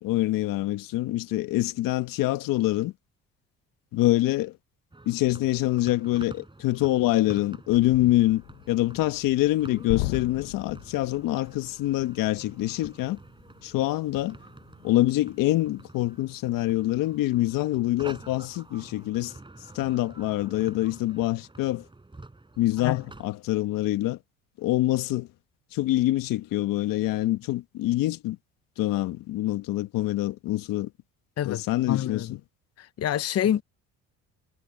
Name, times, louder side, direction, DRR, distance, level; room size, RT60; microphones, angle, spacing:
voice 1, 0.0-2.9 3.9-4.5 5.0-13.2 13.6-14.3 14.8-19.4 19.7-21.8 22.6-24.2 24.6-25.3 25.7-28.4 28.8-30.9 31.4-32.4, left 16 dB, 70° left, 1.6 m, -25 dB
sound 1, 4.9-23.3, right 2 dB, 15° right, 4.5 m, -48 dB
sound 2, 7.7-17.4 17.8-18.0 18.4-19.1, left 21 dB, 90° left, 1.1 m, -41 dB
voice 2, 31.4-32.4 32.8-33.6, left 10 dB, 45° left, 0.9 m, -27 dB
supercardioid pair, 80°, 34 cm